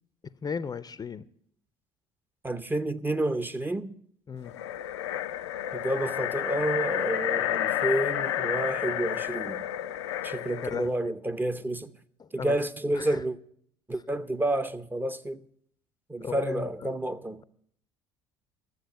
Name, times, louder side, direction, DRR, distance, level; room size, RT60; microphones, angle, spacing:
voice 1, 0.4-1.3 4.3-4.5 10.6-11.1 12.2-12.6 13.0-13.2 16.2-16.7, left 6 dB, 25° left, 0.6 m, -35 dB
voice 2, 2.4-4.0 5.7-9.6 10.2-11.9 12.3-13.4 13.9-15.4 16.1-17.4, right 1 dB, 15° right, 0.7 m, -30 dB
sound 1, 4.4-10.9, left 12 dB, 75° left, 0.5 m, -30 dB
12.0 x 7.6 x 8.6 m
figure-of-eight pair, 55°, 14 cm